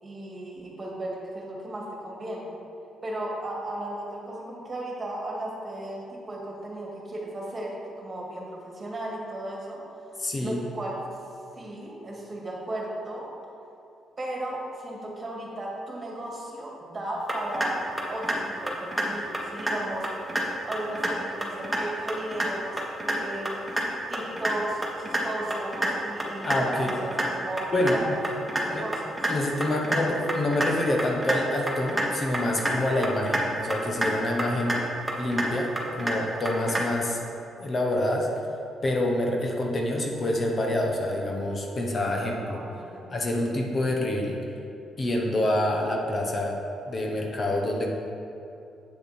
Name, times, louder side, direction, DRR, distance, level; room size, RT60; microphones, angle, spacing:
voice 1, 0.0-2.5 3.0-9.8 10.4-11.0 11.5-13.3 14.2-17.8 18.1-20.1 20.7-23.6 24.1-29.3 42.4-43.2, right 1 dB, 30° right, -3 dB, 2.0 m, -35 dB
voice 2, 10.2-10.6 26.4-26.9 27.7-28.1 28.6-28.8 29.3-34.8 35.2-37.2 37.6-38.3 38.8-42.6 43.1-44.4 45.0-46.6 46.8-47.9, left 1 dB, 40° left, 0 dB, 1.1 m, -27 dB
sound 1, 17.3-17.7 18.0-18.4 18.7-19.0 19.3-19.7 20.0-20.4 20.7-21.1 21.4-21.8 22.1-22.5 22.8-23.2 23.5-23.8 24.1-24.5 24.8-25.2 25.5-25.9 26.2-26.6 26.9-27.3 27.6-27.9 28.2-28.6 28.9-29.3 29.6-30.0 30.3-30.7 31.0-31.4 31.7-32.1 32.3-32.7 33.0-33.4 33.7-34.1 34.4-34.8 35.1-35.5 35.8-36.1 36.5-36.8, right 1 dB, 5° right, 1.5 m, -27 dB
8.1 x 6.6 x 4.4 m, 2.8 s
cardioid pair, 90°, 0 cm